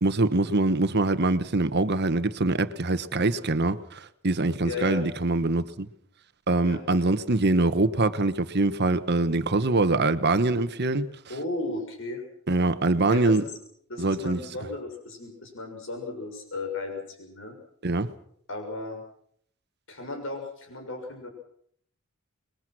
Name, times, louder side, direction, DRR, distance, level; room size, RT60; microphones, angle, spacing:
voice 1, 0.0-5.9 6.5-11.1 12.5-13.4 14.0-14.4 17.8-18.1, right 2 dB, 50° right, 1.2 m, -24 dB
voice 2, 4.6-5.1 6.6-6.8 11.3-12.2 13.1-13.5 13.9-17.5 18.5-19.0 19.9-21.3, left 2 dB, 65° left, 6.7 m, -35 dB
27.5 x 21.5 x 6.2 m
head